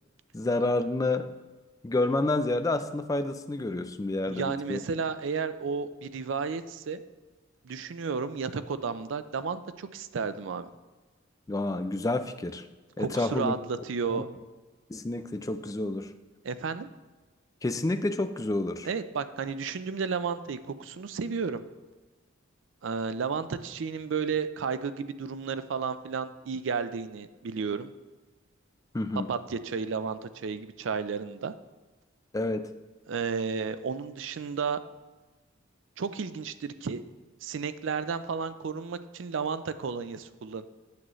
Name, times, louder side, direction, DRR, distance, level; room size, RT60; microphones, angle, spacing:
voice 1, 0.3-1.3 1.8-4.8 11.5-12.6 13.0-13.5 14.1-14.2 14.9-16.1 17.6-18.9 28.9-29.3 32.3-32.7, left 2 dB, 15° left, 9 dB, 0.4 m, -29 dB
voice 2, 4.3-7.0 7.6-10.7 13.0-14.3 16.4-16.9 18.8-21.6 22.8-27.9 29.3-31.5 33.1-34.8 36.0-37.0 37.4-40.6, right 5 dB, 65° right, 12 dB, 0.4 m, -32 dB
8.5 x 7.6 x 3.1 m, 1.3 s
head